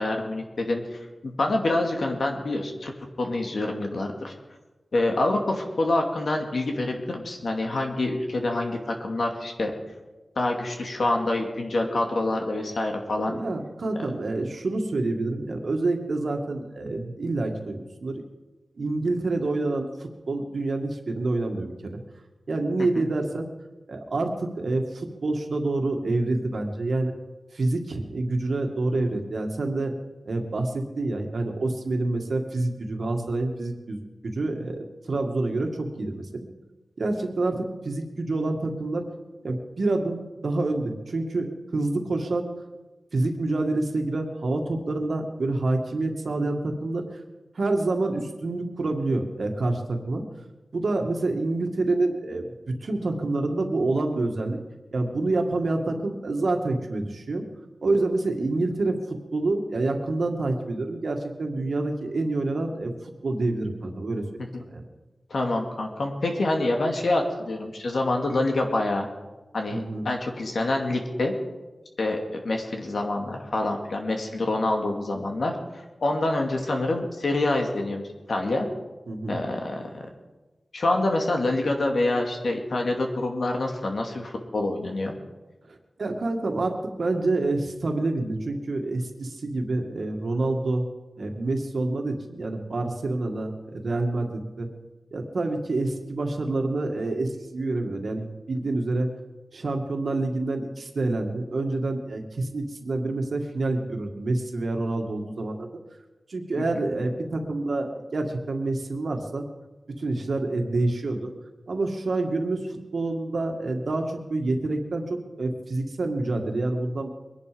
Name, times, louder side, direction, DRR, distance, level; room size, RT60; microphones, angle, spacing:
voice 1, 0.0-2.9 3.2-4.3 4.9-9.7 10.4-13.4 22.9-23.0 64.5-64.6 65.3-69.1 69.5-71.3 72.0-75.6 76.0-78.7 79.3-79.9 80.7-85.1 106.6-106.7, left 2 dB, 75° left, 2 dB, 2.5 m, -26 dB
voice 2, 13.3-18.2 18.8-21.9 22.5-23.5 23.9-27.1 27.5-29.9 30.3-36.3 37.0-39.1 39.4-42.5 43.1-47.0 47.6-50.2 50.7-54.6 54.9-57.4 57.8-59.0 59.3-62.9 63.2-64.2 64.7-64.8 69.7-70.1 79.1-79.4 85.7-90.9 91.2-94.7 95.1-99.1 99.5-105.7 106.3-109.4 110.0-111.3 111.7-117.1, right 2 dB, 75° right, 3 dB, 2.0 m, -27 dB
23.0 x 11.0 x 5.2 m, 1.2 s
wide cardioid pair, 80°, 0 cm